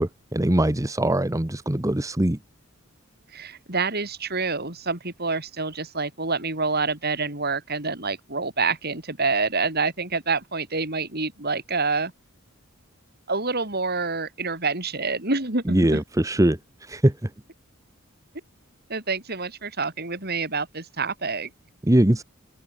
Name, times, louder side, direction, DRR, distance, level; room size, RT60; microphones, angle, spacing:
voice 1, 0.0-2.4 15.7-16.6 16.9-17.1 21.9-22.2, right 1 dB, 15° right, 1.0 m, -21 dB
voice 2, 3.3-12.1 13.3-16.0 18.9-21.5, right 4 dB, 45° right, 6.0 m, -27 dB
open air
head